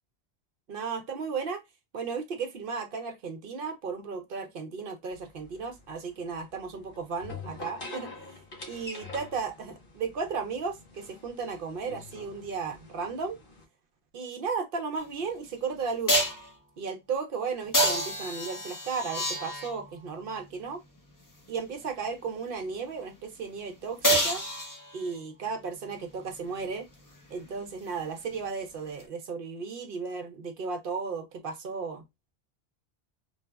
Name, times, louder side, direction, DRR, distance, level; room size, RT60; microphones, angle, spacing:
voice 1, 0.7-1.6 1.9-8.1 8.7-13.4 14.1-16.2 16.8-20.8 21.5-24.4 24.9-26.9 27.3-32.0, right 5 dB, 65° right, 0.7 m, -35 dB
sound 1, 5.1-13.6, left 3 dB, 55° left, 1.0 m, -46 dB
sound 2, 15.0-15.1 16.1-16.5 17.7-19.9 24.0-25.2 29.0-29.1, right 1 dB, 25° left, 0.5 m, -27 dB
3.2 x 2.0 x 2.2 m
omnidirectional pair, 1.1 m